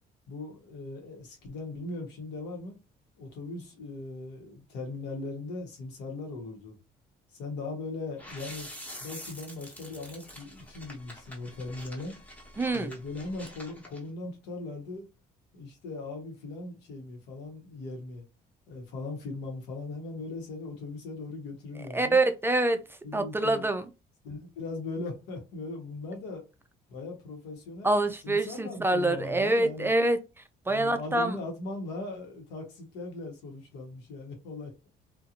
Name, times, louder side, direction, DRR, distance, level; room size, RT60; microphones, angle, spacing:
voice 1, 0.3-2.8 3.2-6.8 7.3-8.7 9.0-12.1 12.7-15.1 15.5-18.2 18.7-22.2 23.0-23.7 24.2-26.4 26.9-27.9 28.2-29.9 30.7-34.9, left 3 dB, 90° left, 1.1 m, -39 dB
sound 1, 8.2-14.0, equal, 10° left, 0.9 m, -46 dB
voice 2, 12.6-12.9 21.8-23.9 27.8-31.4, right 2 dB, 15° right, 0.3 m, -26 dB
2.5 x 2.4 x 2.8 m
cardioid pair, 110°, 17 cm